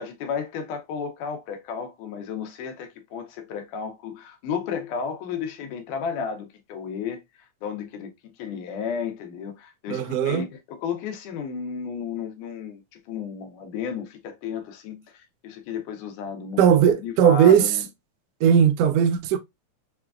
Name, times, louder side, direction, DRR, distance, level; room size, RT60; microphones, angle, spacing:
voice 1, 0.0-7.2 7.6-8.1 8.4-12.8 13.1-17.9, left 6 dB, 90° left, 2.4 m, -33 dB
voice 2, 9.9-10.4 16.6-17.7 18.4-19.4, right 8 dB, 85° right, 1.4 m, -18 dB
6.0 x 2.3 x 2.4 m
omnidirectional pair, 3.5 m